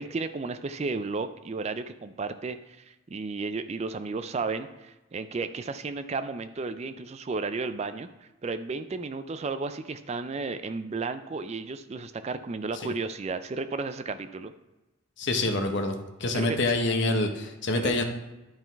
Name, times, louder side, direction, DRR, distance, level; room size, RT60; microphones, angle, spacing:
voice 1, 0.0-8.1 8.4-14.5 16.3-16.6 17.7-18.0, right 3 dB, 30° right, 10 dB, 0.3 m, -33 dB
voice 2, 15.2-15.9 16.2-18.0, left 2 dB, 55° left, 5 dB, 0.9 m, -26 dB
11.5 x 3.8 x 4.5 m, 1.1 s
head